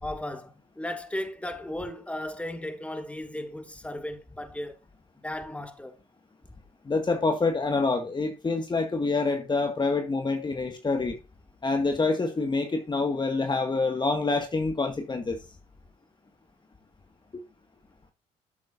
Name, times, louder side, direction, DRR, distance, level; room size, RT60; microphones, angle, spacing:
voice 1, 0.0-4.8 5.2-6.0, left 1 dB, 10° left, 2.4 m, -35 dB
voice 2, 6.9-11.2 11.6-15.4 17.3-17.4, left 3 dB, 30° left, 2.0 m, -26 dB
13.5 x 7.7 x 2.7 m
supercardioid pair, 65°, 16 cm